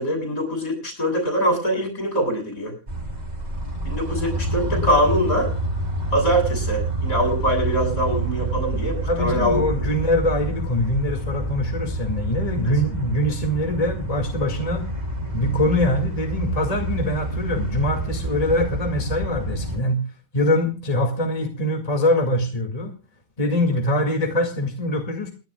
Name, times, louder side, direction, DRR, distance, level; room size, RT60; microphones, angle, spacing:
voice 1, 0.0-2.7 3.8-5.5 6.1-9.6, equal, 80° left, 2 dB, 8.4 m, -23 dB
sound 1, 2.9-19.8, right 2 dB, 30° right, 3.2 m, -28 dB
voice 2, 9.1-14.8 15.3-20.0 20.3-22.9 23.4-25.3, left 1 dB, 25° left, 3 dB, 2.2 m, -23 dB
28.5 x 11.5 x 2.3 m, 0.34 s
omnidirectional pair, 1.5 m